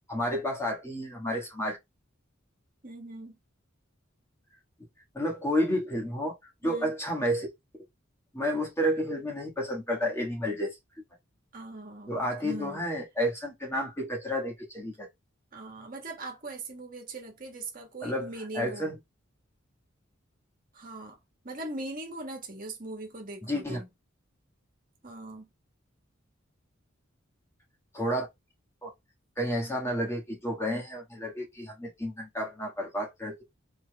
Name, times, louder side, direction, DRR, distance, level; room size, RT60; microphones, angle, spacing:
voice 1, 0.1-1.8 5.1-6.4 6.6-7.5 8.3-10.8 12.1-15.1 18.0-18.3 18.5-18.9 23.4-23.8 27.9-28.3 28.8-28.9 29.4-33.4, equal, 15° left, 1.7 m, -31 dB
voice 2, 2.8-3.4 6.6-6.9 11.5-12.2 12.4-12.8 15.5-18.9 20.7-21.2 21.4-23.9 25.0-25.5, right 2 dB, 45° right, 1.6 m, -40 dB
4.7 x 4.3 x 2.3 m
head